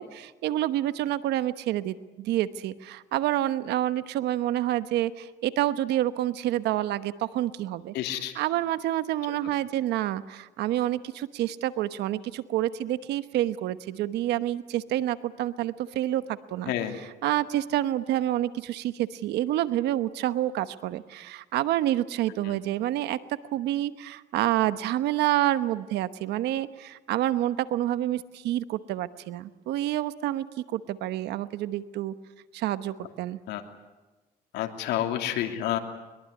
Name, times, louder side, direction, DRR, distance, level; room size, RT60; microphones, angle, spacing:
voice 1, 0.0-16.7 17.2-23.2 23.5-30.5 30.7-32.1 32.5-33.4, right 13 dB, 80° right, 13 dB, 1.1 m, -28 dB
voice 2, 7.9-8.4 16.7-16.9 22.5-22.6 33.5-33.6 34.5-35.8, left 12 dB, 85° left, 5 dB, 2.8 m, -29 dB
22.5 x 22.5 x 9.7 m, 1.2 s
cardioid pair, 110°, 17 cm